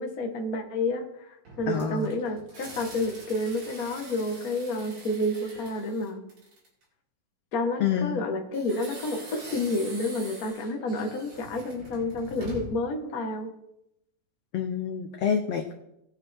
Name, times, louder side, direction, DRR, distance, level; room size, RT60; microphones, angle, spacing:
voice 1, 0.0-6.2 7.5-13.5, left 2 dB, 65° left, 2 dB, 0.9 m, -30 dB
sound 1, 1.4-6.8 8.5-12.9, right 2 dB, 50° right, 4.2 m, -44 dB
voice 2, 1.7-2.1 7.8-8.2 14.5-15.7, left 7 dB, 80° left, 4 dB, 1.4 m, -27 dB
19.0 x 7.2 x 3.5 m, 0.81 s
omnidirectional pair, 4.0 m